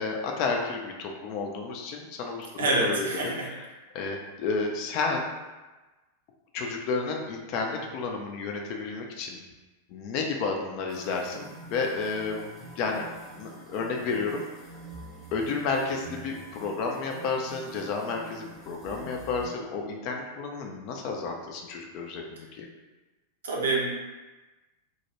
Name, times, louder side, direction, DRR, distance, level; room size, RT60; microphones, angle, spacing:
voice 1, 0.0-3.4 3.9-5.3 6.5-9.4 9.9-12.5 12.8-13.0 13.3-14.4 15.3-22.7, left 4 dB, 40° left, 1 dB, 0.4 m, -31 dB
voice 2, 2.6-3.5 23.4-23.9, right 2 dB, 65° right, -3 dB, 0.5 m, -26 dB
sound 1, 10.9-19.5, right 2 dB, 15° right, 0.7 m, -46 dB
2.1 x 2.1 x 2.9 m, 1.2 s
figure-of-eight pair, 90°, 0 cm